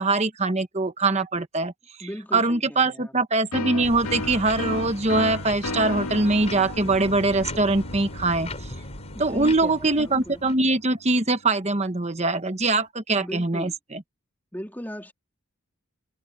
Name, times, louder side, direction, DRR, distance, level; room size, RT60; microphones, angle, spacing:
voice 1, 0.0-1.7 2.3-8.5 9.2-14.0, right 2 dB, 30° right, 1.2 m, -23 dB
voice 2, 2.0-3.1 9.1-10.4 13.2-13.7 14.5-15.1, equal, 10° left, 3.7 m, -37 dB
sound 1, 3.5-11.0, left 2 dB, 85° left, 2.1 m, -35 dB
sound 2, 3.8-10.6, left 2 dB, 30° left, 5.6 m, -39 dB
head